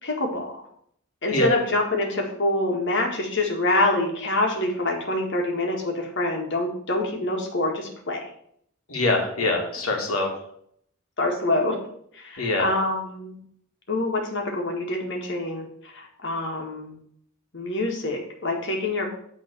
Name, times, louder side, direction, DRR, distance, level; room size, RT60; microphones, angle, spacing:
voice 1, 0.0-0.6 1.2-8.3 11.2-11.8 12.2-13.4 13.9-15.7 15.9-17.0 17.5-19.1, left 2 dB, 55° left, 1 dB, 1.9 m, -26 dB
voice 2, 8.9-10.4 12.4-12.7, left 2 dB, 85° left, 1 dB, 2.2 m, -24 dB
8.9 x 3.8 x 7.0 m, 0.68 s
head